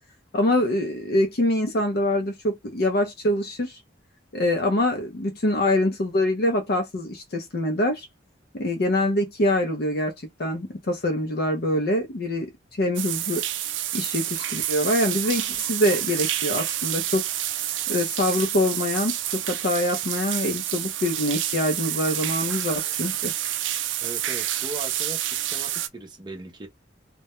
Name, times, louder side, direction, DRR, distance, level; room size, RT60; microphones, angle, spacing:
voice 1, 0.3-3.8 4.3-8.1 8.5-10.1 10.4-12.5 12.8-13.4 13.9-17.2 17.9-19.2 19.5-23.3, left 1 dB, 55° left, 0.5 m, -24 dB
sound 1, 13.0-25.9, right 12 dB, 75° right, 0.4 m, -28 dB
voice 2, 23.7-26.7, right 2 dB, 25° right, 0.6 m, -39 dB
2.1 x 2.1 x 2.9 m
head